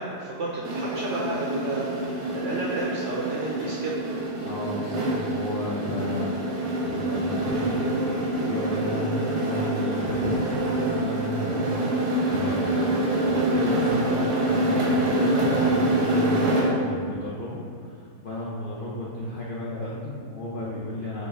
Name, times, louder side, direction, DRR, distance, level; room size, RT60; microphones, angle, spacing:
voice 1, 0.0-4.0, right 2 dB, 70° right, -4 dB, 0.7 m, -31 dB
sound 1, 0.6-16.8, right 1 dB, 85° right, 1.4 m, -26 dB
voice 2, 4.4-21.3, left 1 dB, 75° left, -6 dB, 0.4 m, -33 dB
6.1 x 2.4 x 3.4 m, 2.4 s
omnidirectional pair, 1.7 m